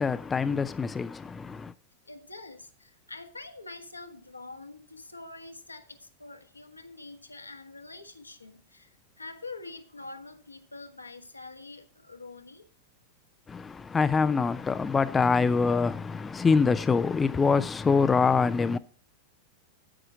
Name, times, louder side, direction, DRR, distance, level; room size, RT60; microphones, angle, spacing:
voice 1, 0.0-1.7 13.5-18.8, left 5 dB, 15° left, 0.5 m, -25 dB
voice 2, 2.1-12.7, left 3 dB, 80° left, 1.5 m, -45 dB
9.8 x 8.9 x 4.9 m
figure-of-eight pair, 90°, 0 cm